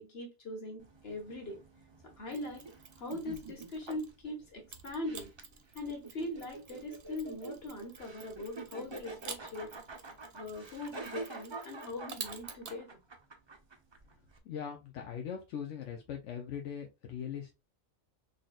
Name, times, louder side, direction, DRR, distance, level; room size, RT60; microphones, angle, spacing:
voice 1, 0.0-1.6 2.0-2.6 3.0-5.3 5.7-9.7 10.3-13.0, left 2 dB, 55° left, 1.8 m, -41 dB
sound 1, 0.8-14.4, right 3 dB, 30° right, 0.5 m, -47 dB
Mechanisms, 2.3-4.2 4.7-12.8, right 6 dB, 55° right, 0.9 m, -50 dB
voice 2, 14.4-17.5, left 8 dB, 85° left, 1.0 m, -40 dB
3.9 x 3.3 x 2.3 m
omnidirectional pair, 1.2 m